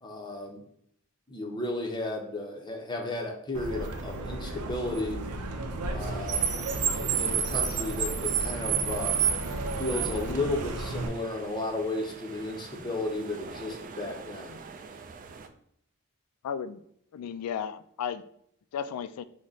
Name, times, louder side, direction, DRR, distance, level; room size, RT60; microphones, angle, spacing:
voice 1, 0.0-0.6 1.3-5.2 5.8-9.2 9.8-14.6, left 2 dB, 20° left, 2 dB, 0.6 m, -34 dB
Car, 3.5-11.1, right 5 dB, 85° right, 0.6 m, -30 dB
sound 1, 6.0-15.5, right 4 dB, 35° right, 0.3 m, -44 dB
voice 2, 16.4-16.8 17.1-18.2 18.7-19.2, left 7 dB, 90° left, 13 dB, 0.3 m, -34 dB
4.8 x 2.2 x 3.9 m, 0.69 s
head